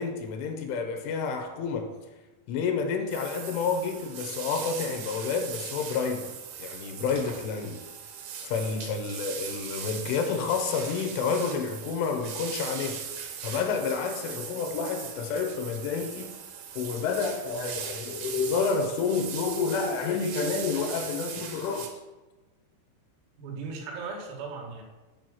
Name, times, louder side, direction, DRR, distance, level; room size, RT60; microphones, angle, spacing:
voice 1, 0.0-1.9 2.5-6.3 6.6-7.8 8.4-13.0 13.4-16.3 16.8-21.9, left 5 dB, 80° left, 3.3 m, -29 dB
sound 1, 3.1-21.9, right 7 dB, 75° right, 2.3 m, -39 dB
voice 2, 23.4-24.8, right 4 dB, 90° right, 4.3 m, -37 dB
9.3 x 4.9 x 6.3 m
omnidirectional pair, 5.7 m